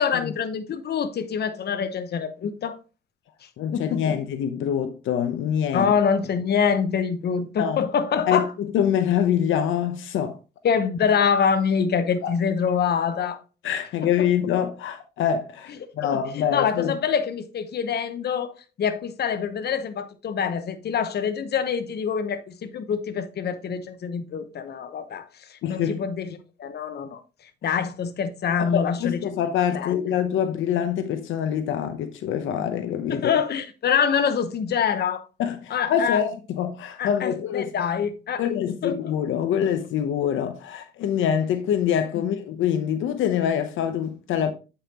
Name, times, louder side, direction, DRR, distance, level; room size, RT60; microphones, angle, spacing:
voice 1, 0.0-2.8 3.4-4.2 5.7-8.5 10.6-13.4 14.0-14.3 15.8-27.2 27.6-29.4 29.7-30.0 33.1-35.2 35.7-36.2 37.0-39.1 42.2-42.3, left 7 dB, 55° left, 1.0 m, -25 dB
voice 2, 3.6-5.9 7.6-7.8 8.3-10.4 12.2-12.3 13.6-16.9 25.6-26.0 27.6-27.8 28.6-33.3 35.4-37.7 38.4-44.5, left 9 dB, 80° left, 0.9 m, -25 dB
8.2 x 5.7 x 2.9 m
cardioid pair, 90°, 20 cm